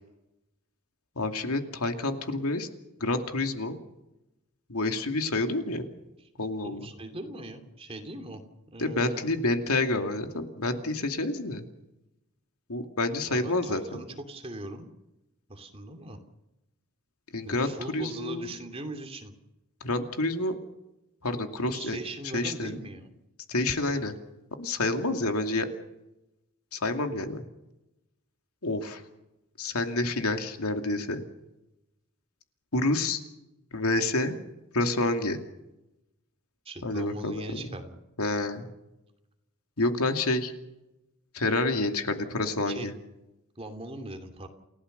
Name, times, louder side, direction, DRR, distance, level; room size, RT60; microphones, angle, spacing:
voice 1, 1.2-2.7 3.0-3.8 4.7-5.9 6.4-6.9 8.8-11.7 12.7-14.0 17.3-18.5 19.8-20.6 21.2-22.0 22.3-22.7 23.5-24.1 24.6-25.7 26.7-27.4 28.6-29.0 29.6-31.2 32.7-33.2 33.7-34.4 34.7-35.4 36.8-37.6 38.2-38.7 39.8-40.5 41.3-42.9, left 2 dB, 90° left, 6 dB, 2.6 m, -28 dB
voice 2, 6.6-8.4 8.7-9.3 13.3-14.9 15.5-16.2 17.5-19.3 21.7-23.1 36.6-38.0 42.7-42.9 43.6-44.5, right 1 dB, 25° right, 5 dB, 2.7 m, -40 dB
29.0 x 16.5 x 6.7 m, 0.93 s
head